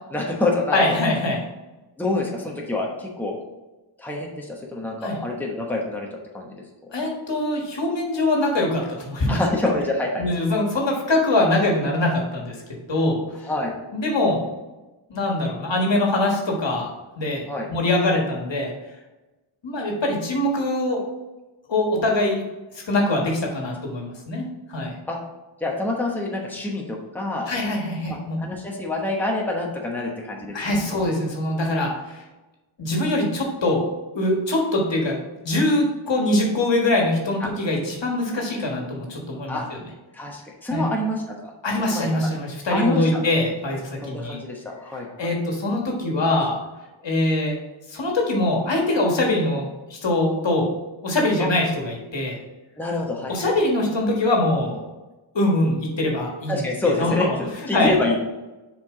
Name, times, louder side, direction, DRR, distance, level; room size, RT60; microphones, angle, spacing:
voice 1, 0.1-1.0 2.0-3.4 4.0-6.9 9.3-10.2 13.4-13.7 17.5-17.7 25.1-25.2 25.6-27.5 28.1-30.6 30.8-30.9 37.4-37.5 39.5-39.7 40.1-41.5 41.9-42.2 42.7-43.2 44.0-45.3 51.4-51.5 52.8-53.5 56.5-58.2, left 2 dB, 5° left, -1 dB, 1.1 m, -27 dB
voice 2, 0.7-1.4 5.0-5.2 6.9-9.4 10.2-12.6 12.9-13.2 13.9-14.5 15.1-16.9 17.2-17.4 17.7-18.7 19.6-21.0 21.7-22.4 22.9-25.0 27.5-28.4 30.5-32.2 32.8-33.8 34.1-35.2 35.4-39.6 40.7-40.8 41.6-44.4 45.2-46.6 47.0-47.6 47.9-50.7 51.0-52.4 53.3-54.8 55.3-56.6 57.0-57.4 57.7-57.9, left 2 dB, 65° left, 0 dB, 1.8 m, -23 dB
7.0 x 4.7 x 3.8 m, 1.1 s
wide cardioid pair, 110°, 48 cm